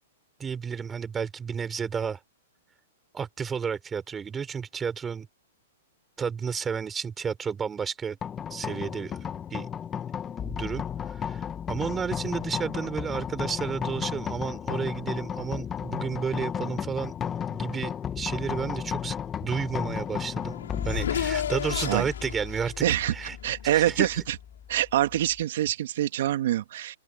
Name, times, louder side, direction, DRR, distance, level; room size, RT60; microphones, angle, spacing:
voice 1, 0.4-2.2 3.1-5.3 6.2-8.2 8.5-9.3 9.5-9.7 10.4-17.1 17.5-20.6 20.8-22.7 23.1-23.4 23.7-24.1, right 6 dB, 10° right, 3.9 m, -32 dB
sound 1, 8.2-25.4, left 8 dB, 15° left, 1.4 m, -34 dB
Race car auto racing / Accelerating revving vroom, 20.1-24.1, left 9 dB, 85° left, 3.7 m, -34 dB
voice 2, 22.8-23.1 23.4-24.4 24.7-27.0, right 12 dB, 55° right, 2.5 m, -25 dB
open air
hypercardioid pair, 165°, 0 cm